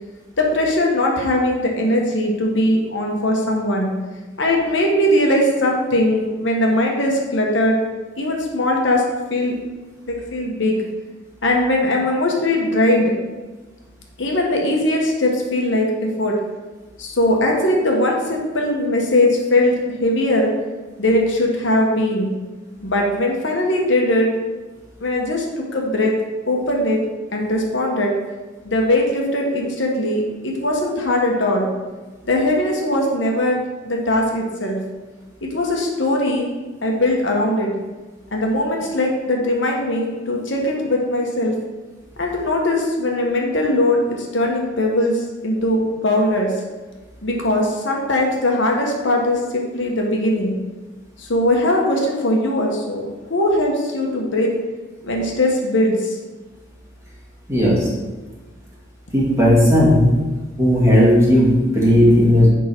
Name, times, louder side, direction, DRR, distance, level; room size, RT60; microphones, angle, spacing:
voice 1, 0.4-3.9 4.4-7.8 8.2-9.6 10.1-10.8 11.4-13.1 14.2-16.4 17.0-19.7 20.0-20.5 21.0-22.3 22.8-24.3 25.0-26.1 26.5-27.0 27.3-28.1 28.6-31.7 32.2-34.8 35.4-36.5 36.8-37.7 38.3-41.5 42.2-46.5 47.2-50.5 51.2-54.5 55.0-56.1, left 1 dB, 65° left, 0 dB, 1.1 m, -20 dB
voice 2, 57.5-57.9 59.1-60.1 60.6-62.5, equal, 15° right, -7 dB, 2.0 m, -14 dB
10.0 x 3.7 x 4.5 m, 1.2 s
head